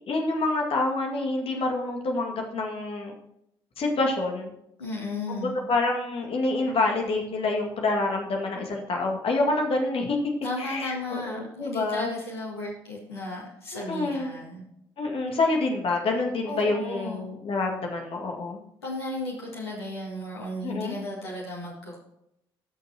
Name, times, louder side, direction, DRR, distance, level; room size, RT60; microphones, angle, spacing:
voice 1, 0.1-3.1 3.8-4.5 5.3-10.3 10.6-12.1 13.7-14.3 15.0-18.6 20.6-21.0, left 2 dB, 45° left, 1 dB, 2.2 m, -27 dB
voice 2, 4.8-5.5 10.4-14.6 16.5-17.2 18.8-22.0, left 1 dB, 80° left, -4 dB, 2.4 m, -34 dB
16.5 x 6.6 x 3.0 m, 0.80 s
figure-of-eight pair, 45°, 13 cm